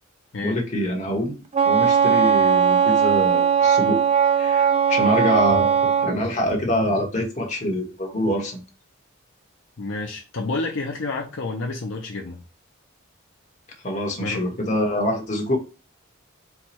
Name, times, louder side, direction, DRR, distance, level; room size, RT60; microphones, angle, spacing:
voice 1, 0.4-4.0 4.4-8.6 13.8-15.6, equal, 35° left, 1 dB, 1.3 m, -25 dB
Wind instrument woodwind instrument, 1.5-6.1, right 7 dB, 30° right, 0.3 m, -19 dB
voice 2, 9.8-12.4 14.2-14.4, left 3 dB, 65° left, 0 dB, 0.7 m, -29 dB
4.6 x 2.3 x 4.3 m, 0.31 s
head